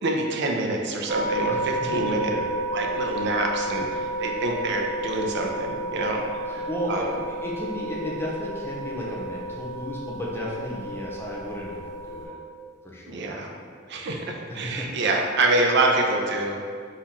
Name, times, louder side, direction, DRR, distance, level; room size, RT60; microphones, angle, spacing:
voice 1, 0.0-2.3 2.7-7.1 13.1-13.5 13.9-16.6, right 2 dB, 60° right, 1 dB, 0.5 m, -26 dB
sound 1, 1.1-12.2, right 1 dB, 20° right, 0.9 m, -31 dB
voice 2, 1.5-1.9 2.2-2.5 6.5-12.4 12.8-13.3 14.5-14.9, equal, 10° left, -4 dB, 0.7 m, -33 dB
3.9 x 3.0 x 4.2 m, 2.1 s
head